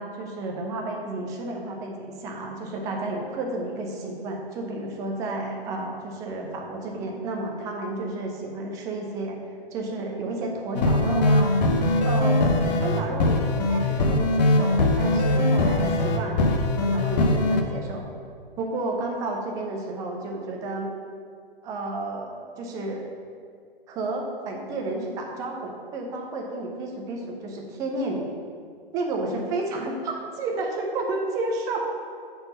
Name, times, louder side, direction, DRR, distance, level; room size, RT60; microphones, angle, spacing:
voice 1, 0.0-9.4 9.7-11.5 12.0-16.5 16.8-18.0 18.6-20.9 21.6-23.0 23.9-28.3 28.9-31.9, right 2 dB, 10° right, 1 dB, 0.4 m, -31 dB
sound 1, 10.7-17.6, left 2 dB, 45° left, 0.6 m, -21 dB
5.1 x 4.6 x 5.3 m, 2.1 s
hypercardioid pair, 145°, 30 cm